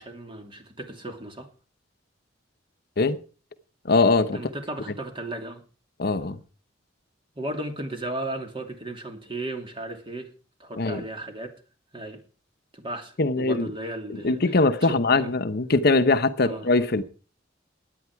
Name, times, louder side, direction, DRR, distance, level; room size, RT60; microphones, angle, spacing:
voice 1, 0.0-1.5 4.3-5.6 7.4-10.3 10.6-11.5 11.9-12.2 12.7-14.5 14.8-15.3 16.4-16.7, right 1 dB, 25° right, 2.7 m, -35 dB
voice 2, 3.8-4.4 6.0-6.4 10.8-11.0 13.2-13.7 14.1-17.0, left 3 dB, 55° left, 0.9 m, -22 dB
17.0 x 10.0 x 4.7 m
head